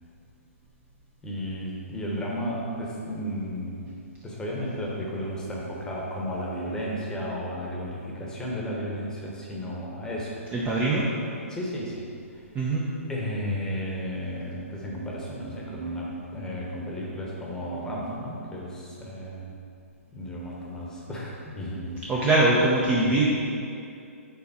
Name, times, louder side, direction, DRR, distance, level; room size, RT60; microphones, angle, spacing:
voice 1, 1.2-3.8 4.2-10.4 11.5-12.4 13.1-19.5 20.1-22.1, equal, 10° left, -4 dB, 1.1 m, -33 dB
voice 2, 10.5-11.1 12.5-12.8 22.1-23.3, right 2 dB, 15° right, -6 dB, 0.7 m, -22 dB
6.9 x 4.8 x 4.2 m, 2.5 s
hypercardioid pair, 145°, 8 cm